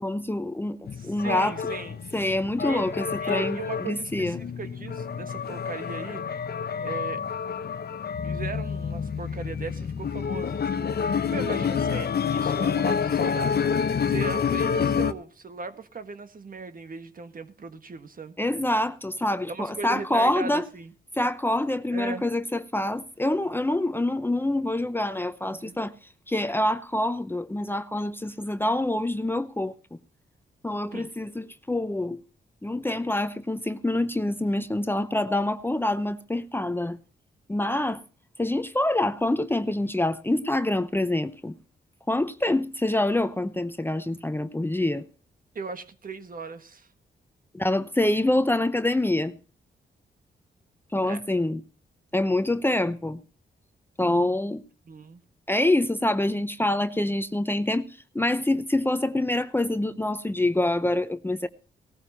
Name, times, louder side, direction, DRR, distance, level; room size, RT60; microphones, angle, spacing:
voice 1, 0.0-1.6 2.1-4.4 18.4-20.6 21.1-25.9 26.3-30.0 30.6-32.2 32.6-37.0 37.5-38.0 38.4-41.5 42.1-45.0 47.5-49.3 50.9-51.6 52.1-53.2 54.0-54.6 55.5-57.9 58.1-61.5, left 1 dB, 10° left, 0.7 m, -26 dB
sound 1, 0.8-15.1, left 6 dB, 60° left, 0.9 m, -28 dB
voice 2, 0.9-2.0 2.6-2.8 3.2-6.2 6.8-7.2 8.2-13.7 14.0-18.4 19.5-20.9 21.9-22.3 25.5-25.8 30.9-31.1 45.5-46.9 51.0-51.2 54.9-55.2, right 4 dB, 50° right, 1.5 m, -38 dB
18.0 x 14.0 x 2.8 m
cardioid pair, 85°, 19 cm